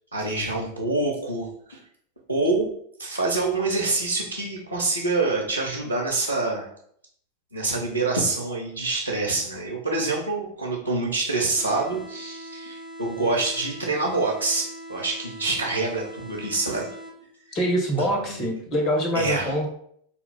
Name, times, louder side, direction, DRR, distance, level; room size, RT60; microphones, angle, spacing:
voice 1, 0.1-1.8 2.3-2.7 3.0-6.7 7.5-16.9 18.0-18.4 19.1-19.7, right 3 dB, 90° left, -1 dB, 0.7 m, -26 dB
sound 1, 11.6-17.5, right 1 dB, 5° left, 1.5 m, -41 dB
voice 2, 17.5-19.7, equal, 30° left, 3 dB, 1.1 m, -24 dB
4.5 x 2.4 x 3.5 m, 0.66 s
figure-of-eight pair, 90°, 0 cm